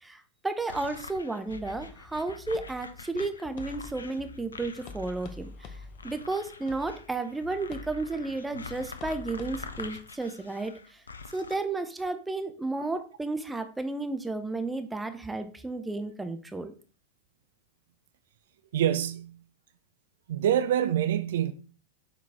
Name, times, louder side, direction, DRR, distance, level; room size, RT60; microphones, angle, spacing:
voice 1, 0.0-5.8 6.0-11.0 11.3-16.7, right 3 dB, 10° right, 0.6 m, -33 dB
sound 1, 0.7-11.6, left 4 dB, 75° left, 0.5 m, -45 dB
sound 2, 1.5-9.8, left 4 dB, 40° left, 0.7 m, -47 dB
voice 2, 18.7-19.4 20.3-21.5, right 10 dB, 60° right, 0.4 m, -26 dB
6.5 x 4.1 x 3.5 m
figure-of-eight pair, 90°, 0 cm